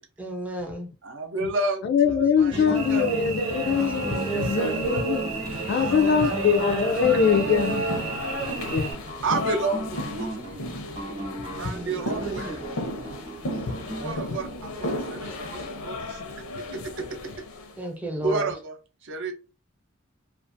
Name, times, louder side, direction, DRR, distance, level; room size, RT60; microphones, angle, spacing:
voice 1, 0.2-0.9 11.6-12.0 17.8-18.5, right 1 dB, 5° right, 0.5 m, -33 dB
voice 2, 1.0-3.1 5.7-6.5 6.9-7.8 9.2-10.6 11.5-12.6 13.9-16.2 16.6-17.1 18.2-18.8 19.0-19.3, right 3 dB, 60° right, 0.6 m, -31 dB
voice 3, 1.8-5.3 5.7-8.0 8.7-8.9, left 6 dB, 55° left, 0.3 m, -23 dB
sound 1, 2.5-14.1, right 2 dB, 25° right, 0.9 m, -33 dB
Cricket / Buzz, 2.7-8.9, right 4 dB, 90° right, 0.9 m, -34 dB
sound 2, 3.1-17.8, left 2 dB, 85° left, 0.6 m, -36 dB
2.4 x 2.4 x 2.5 m
head